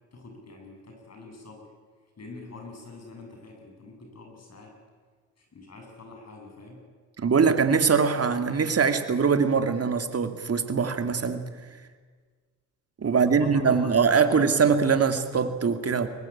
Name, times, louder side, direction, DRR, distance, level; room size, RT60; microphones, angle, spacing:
voice 1, 0.1-1.7 2.2-4.8 5.4-6.8 13.0-14.6, left 3 dB, 40° left, 8.0 m, -45 dB
voice 2, 7.2-11.5 13.0-16.1, right 5 dB, 40° right, 2.6 m, -22 dB
23.5 x 20.0 x 8.8 m
supercardioid pair, 65°, 37 cm